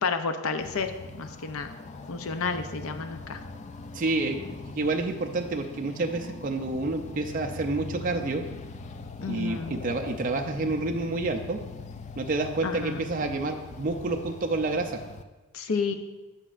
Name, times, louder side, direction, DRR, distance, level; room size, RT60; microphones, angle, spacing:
voice 1, 0.0-1.7 2.1-3.4 9.2-9.8 12.6-13.1 15.5-15.9, left 5 dB, 80° left, 8 dB, 0.6 m, -31 dB
sound 1, 0.6-15.2, left 3 dB, 35° left, 0.3 m, -42 dB
voice 2, 3.9-4.4 4.7-8.4 9.3-11.6 12.2-15.0, right 2 dB, 40° right, 4 dB, 0.4 m, -29 dB
9.9 x 5.9 x 2.5 m, 1.2 s
head